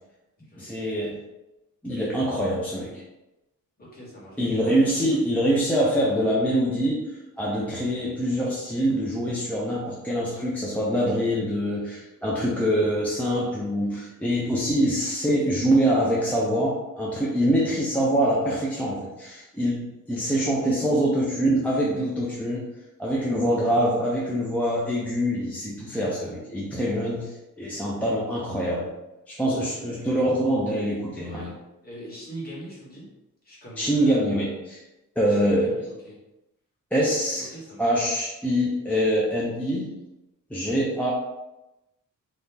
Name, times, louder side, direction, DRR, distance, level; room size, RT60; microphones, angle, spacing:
voice 1, 0.6-1.2 1.8-3.0 4.4-22.7 23.0-28.9 29.3-31.5 33.8-34.8 35.2-35.7 36.9-37.5 37.8-39.9 40.5-41.1, equal, 5° left, -6 dB, 0.4 m, -24 dB
voice 2, 3.8-5.0 12.6-12.8 29.6-30.1 31.2-31.5 31.8-33.1 33.4-34.2 35.3-36.2 37.4-37.8 40.7-40.8, right 1 dB, 25° left, -6 dB, 1.3 m, -42 dB
2.8 x 2.4 x 3.6 m, 0.97 s
wide cardioid pair, 135°, 33 cm